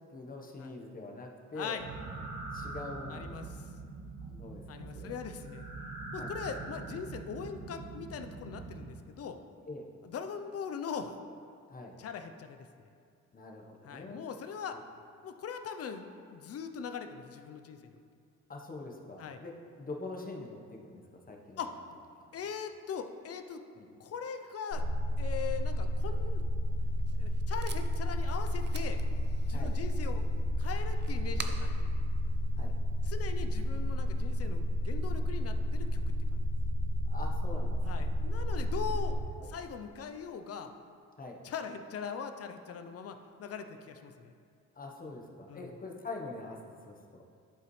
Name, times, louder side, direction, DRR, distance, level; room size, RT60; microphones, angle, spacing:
voice 1, 0.1-1.8 2.5-3.3 4.3-5.2 6.2-6.3 9.7-9.9 11.7-12.0 13.3-14.2 18.5-19.5 19.8-21.6 22.2-22.3 23.8-23.9 29.5-29.7 32.5-32.7 37.1-38.1 38.8-38.9 39.4-39.5 41.2-41.4 44.8-47.2, left 2 dB, 30° left, 1 dB, 1.0 m, -44 dB
voice 2, 1.5-1.9 3.1-3.5 4.7-5.7 6.1-9.4 10.0-11.2 12.0-12.6 13.8-14.8 15.2-18.0 19.2-19.4 21.6-21.7 22.3-23.6 24.0-24.8 25.2-26.4 27.2-29.0 29.5-30.2 30.6-31.9 33.0-36.0 36.3-36.4 37.9-39.2 39.4-40.7 41.4-44.3 45.5-45.7, left 6 dB, 50° left, 7 dB, 0.6 m, -41 dB
sound 1, 1.8-8.9, right 3 dB, 70° right, 1.1 m, -43 dB
sound 2, 24.7-39.2, left 1 dB, 70° left, 1.9 m, -31 dB
Packing tape duct tape, 26.7-33.2, right 6 dB, 35° right, 0.5 m, -49 dB
11.5 x 5.0 x 3.2 m, 2.3 s
cardioid pair, 90°, 30 cm